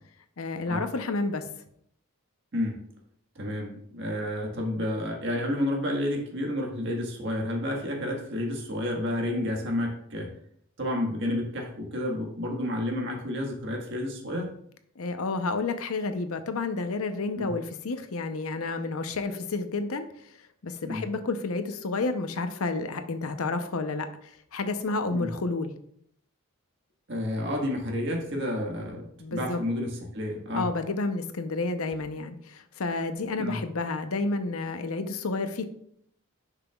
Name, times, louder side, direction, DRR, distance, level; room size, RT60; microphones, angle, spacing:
voice 1, 0.4-1.4 15.0-20.1 20.6-25.7 29.2-29.6 30.5-35.7, left 3 dB, 80° left, 8 dB, 0.7 m, -30 dB
voice 2, 2.5-2.9 3.3-10.3 10.8-14.5 17.3-17.5 20.8-21.1 25.1-25.3 27.1-30.7 33.4-33.6, left 1 dB, 55° right, 0 dB, 1.6 m, -30 dB
10.5 x 5.8 x 2.3 m, 0.69 s
head